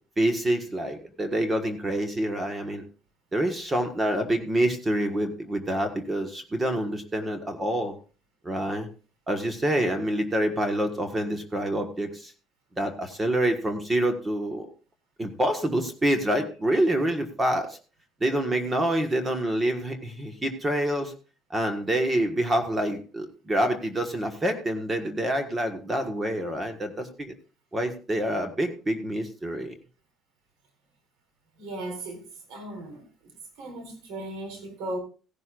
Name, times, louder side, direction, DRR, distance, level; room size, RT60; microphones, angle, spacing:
voice 1, 0.2-2.8 3.3-7.9 8.4-8.9 9.3-12.3 12.8-14.7 15.2-17.8 18.2-21.1 21.5-27.3 27.7-29.7, right 1 dB, 20° right, 1.5 m, -27 dB
voice 2, 31.6-33.3 33.6-35.0, right 1 dB, 85° right, 3.8 m, -37 dB
16.0 x 11.0 x 2.5 m
cardioid pair, 130°, 0 cm